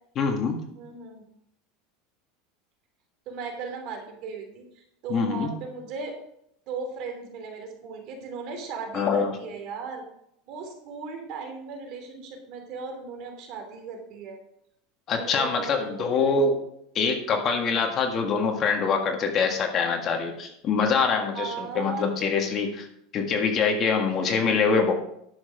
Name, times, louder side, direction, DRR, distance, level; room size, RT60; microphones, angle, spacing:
voice 1, 0.1-0.6 5.1-5.5 8.9-9.3 15.1-16.6 16.9-22.9 23.1-24.9, left 5 dB, 30° left, 3 dB, 1.6 m, -24 dB
voice 2, 0.7-1.2 3.3-6.2 6.7-10.0 10.5-14.4 15.1-16.5 21.3-22.1 24.1-24.5, right 5 dB, 50° right, 4 dB, 3.0 m, -37 dB
11.0 x 7.3 x 5.0 m, 0.74 s
supercardioid pair, 150°, 0 cm